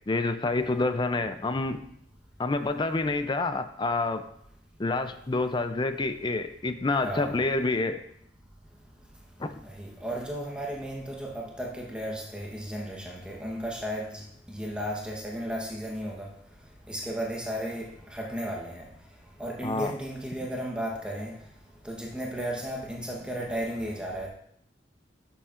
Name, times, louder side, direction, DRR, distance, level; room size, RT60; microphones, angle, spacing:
voice 1, 0.1-1.8 2.4-4.2 4.8-8.0 9.4-9.5 19.6-19.9, left 3 dB, 25° left, 9 dB, 0.4 m, -28 dB
voice 2, 7.0-7.4 9.6-16.3 16.9-18.8 19.4-21.3 21.8-24.3, equal, 5° right, -2 dB, 1.0 m, -34 dB
11.0 x 6.9 x 2.5 m, 0.71 s
head